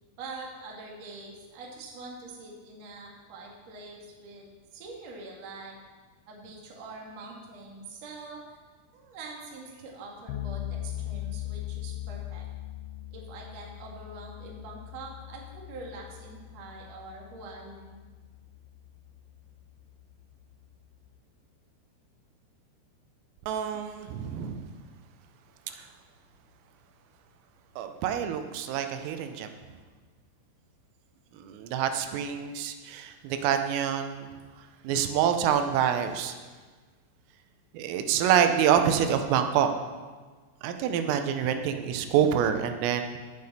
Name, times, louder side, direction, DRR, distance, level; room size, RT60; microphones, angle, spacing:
voice 1, 0.2-5.7 6.3-8.6 8.9-12.4 13.1-18.0, right 3 dB, 55° right, -2 dB, 2.0 m, -44 dB
sound 1, 10.3-21.2, left 13 dB, 85° left, 3.1 m, -40 dB
voice 2, 23.5-24.7 25.7-25.9 27.8-29.6 31.4-34.3 34.9-36.4 37.7-39.7 40.6-43.2, right 9 dB, 85° right, 7 dB, 3.4 m, -26 dB
19.0 x 6.8 x 4.2 m, 1.4 s
omnidirectional pair, 5.8 m